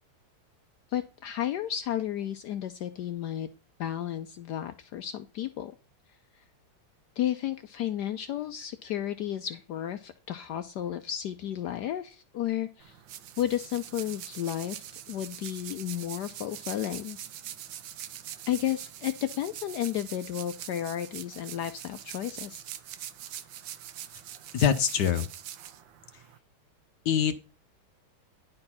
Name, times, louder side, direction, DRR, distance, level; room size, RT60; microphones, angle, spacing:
voice 1, 0.9-3.5 3.8-5.7 7.2-13.0 13.4-17.2 18.5-22.6, left 11 dB, 90° left, 10 dB, 0.9 m, -33 dB
sound 1, 12.8-26.4, right 11 dB, 70° right, 1.3 m, -43 dB
voice 2, 24.5-25.3 27.1-27.4, left 8 dB, 65° left, 10 dB, 1.1 m, -24 dB
10.5 x 4.4 x 5.6 m, 0.34 s
omnidirectional pair, 2.4 m